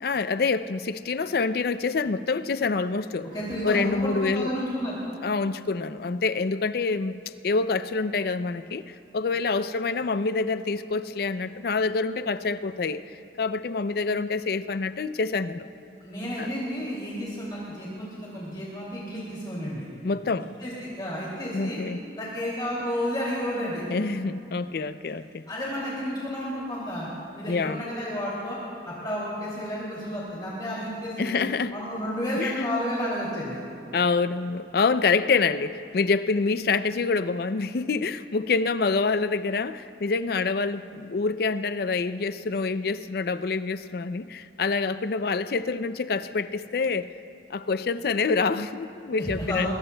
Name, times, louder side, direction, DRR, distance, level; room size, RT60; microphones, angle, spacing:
voice 1, 0.0-3.3 3.6-4.5 5.2-7.2 7.4-13.1 13.4-15.7 16.4-16.5 20.0-20.5 21.5-22.0 23.9-25.4 27.5-27.8 31.2-31.7 32.4-32.8 33.9-47.1 47.5-49.7, left 4 dB, 55° left, 13 dB, 0.4 m, -26 dB
voice 2, 3.3-5.0 16.0-19.8 20.6-21.8 22.1-23.8 25.5-27.1 27.3-28.6 28.8-31.4 31.7-33.6 49.2-49.7, equal, 25° left, -7 dB, 2.5 m, -31 dB
23.5 x 21.0 x 2.2 m, 2.7 s
head